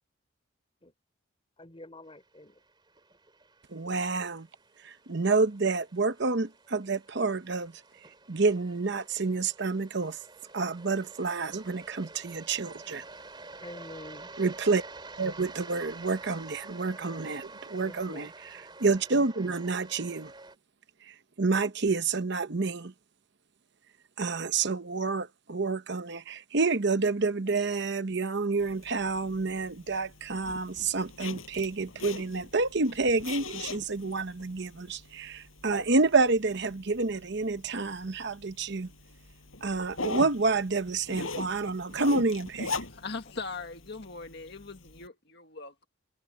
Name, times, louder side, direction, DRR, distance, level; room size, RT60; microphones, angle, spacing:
voice 1, 1.6-2.6 13.6-14.3 17.8-18.3, left 1 dB, 25° left, 3.7 m, -47 dB
sound 1, 2.2-20.5, right 3 dB, 20° right, 3.4 m, -49 dB
voice 2, 3.7-4.5 4.8-7.7 8.3-10.2 10.5-13.0 14.4-14.8 15.2-18.3 18.8-20.3 21.1-22.9 24.2-38.9 39.6-42.7, right 3 dB, 55° right, 0.9 m, -29 dB
Zipper (clothing), 28.6-45.1, left 3 dB, 75° left, 7.0 m, -42 dB
voice 3, 42.9-45.9, left 4 dB, 50° left, 1.6 m, -40 dB
head